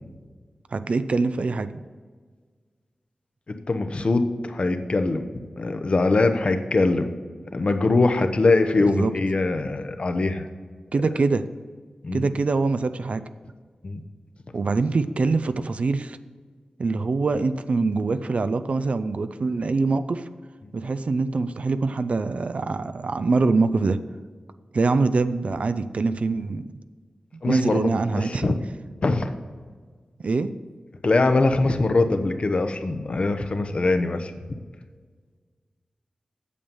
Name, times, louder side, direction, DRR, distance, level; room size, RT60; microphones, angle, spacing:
voice 1, 0.7-1.7 8.8-9.1 10.9-11.5 12.1-13.2 14.5-16.2 16.8-20.3 20.7-24.0 24.7-26.6 27.5-28.5 30.2-30.5, right 3 dB, 60° right, 12 dB, 0.5 m, -24 dB
voice 2, 3.5-5.2 5.6-7.1 7.5-10.5 12.0-12.3 13.8-14.0 27.4-27.9 28.1-28.6 29.0-29.3 31.0-34.3, left 3 dB, 50° left, 7 dB, 0.8 m, -22 dB
8.4 x 7.1 x 5.4 m, 1.6 s
wide cardioid pair, 75°, 2 cm